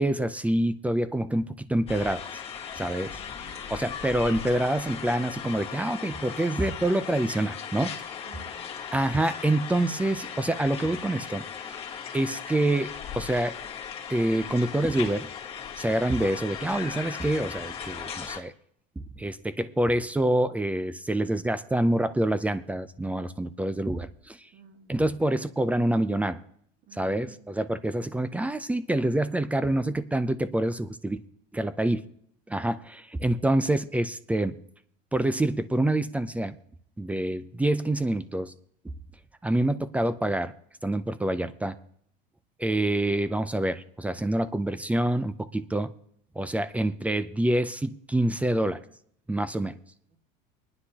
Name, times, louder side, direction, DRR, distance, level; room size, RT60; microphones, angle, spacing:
voice 1, 0.0-2.2 2.7-3.2 3.7-8.0 8.9-11.5 12.1-13.6 14.1-15.3 15.8-18.5 19.0-24.5 24.9-26.4 27.0-31.2 31.5-32.0 32.5-34.6 35.1-36.6 37.0-38.5 39.4-40.5 40.8-41.8 42.6-45.9 46.4-48.8 49.3-49.8, right 1 dB, 5° right, 13 dB, 0.4 m, -26 dB
sound 1, 1.9-18.4, left 7 dB, 30° left, 1.7 m, -38 dB
voice 2, 3.0-3.7 8.2-8.8 24.5-25.1 26.9-28.1 50.1-50.2, right 5 dB, 45° right, 1 dB, 1.9 m, -54 dB
22.5 x 9.8 x 2.9 m, 0.66 s
supercardioid pair, 130°, 21 cm